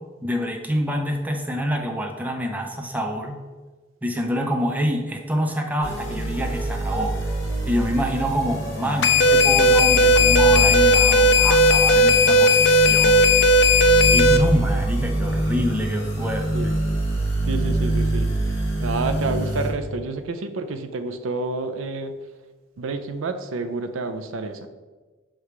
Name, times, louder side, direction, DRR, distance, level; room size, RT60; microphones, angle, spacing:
voice 1, 0.2-3.4 4.0-7.3 7.7-13.2 14.1-16.7, equal, 10° right, 3 dB, 0.5 m, -26 dB
sound 1, 5.8-19.7, right 2 dB, 15° left, 1.5 m, -25 dB
sound 2, 9.0-14.4, left 1 dB, 55° left, 0.4 m, -16 dB
voice 2, 17.5-18.3 18.8-22.2 22.8-24.7, right 3 dB, 90° right, 9 dB, 0.5 m, -29 dB
5.9 x 3.3 x 4.8 m, 1.3 s
head